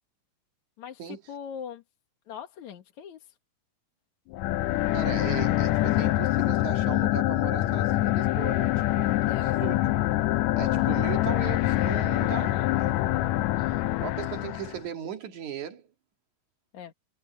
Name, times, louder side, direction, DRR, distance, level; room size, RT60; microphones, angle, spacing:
voice 1, 0.8-1.8 2.3-3.3 9.3-9.5 12.2-12.7 16.7-16.9, left 8 dB, 65° left, 2.8 m, -41 dB
sound 1, 4.3-14.8, left 16 dB, 85° left, 1.6 m, -25 dB
voice 2, 4.9-9.8 10.6-13.1 13.6-13.7 14.0-15.9, right 9 dB, 65° right, 3.3 m, -37 dB
omnidirectional pair, 3.8 m